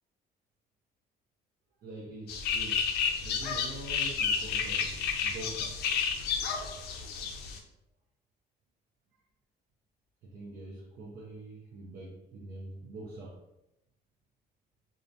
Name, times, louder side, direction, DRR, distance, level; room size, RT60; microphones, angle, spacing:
voice 1, 1.8-2.9 3.2-5.8 10.2-13.4, right 2 dB, 60° right, -3 dB, 0.5 m, -44 dB
sound 1, 2.3-7.6, left 6 dB, 75° left, 0.4 m, -31 dB
2.4 x 2.0 x 2.7 m, 0.86 s
cardioid pair, 110°, 17 cm